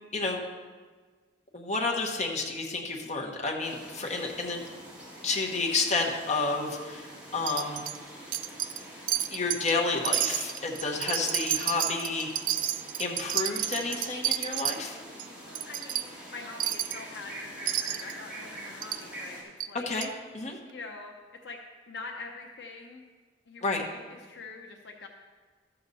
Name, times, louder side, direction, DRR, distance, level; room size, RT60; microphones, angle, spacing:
voice 1, 1.5-4.6 5.2-7.8 9.3-12.3 13.0-15.0 19.9-20.6 23.6-23.8, left 3 dB, 40° left, 0 dB, 1.3 m, -30 dB
sound 1, 3.6-19.4, right 1 dB, 10° right, 2.7 m, -45 dB
Wind chime, 7.5-8.0 8.3-8.8 9.1-9.7 10.0-14.8 15.2-15.3 15.5-16.0 16.6-17.0 17.7-18.1 18.8-19.0 19.6-19.7 20.0-20.1, right 12 dB, 50° right, 0.4 m, -30 dB
voice 2, 15.4-19.9 20.6-21.1 21.4-21.6 21.9-23.0 23.5-25.1, left 3 dB, 70° left, 1 dB, 0.8 m, -44 dB
13.5 x 6.9 x 4.1 m, 1.5 s
head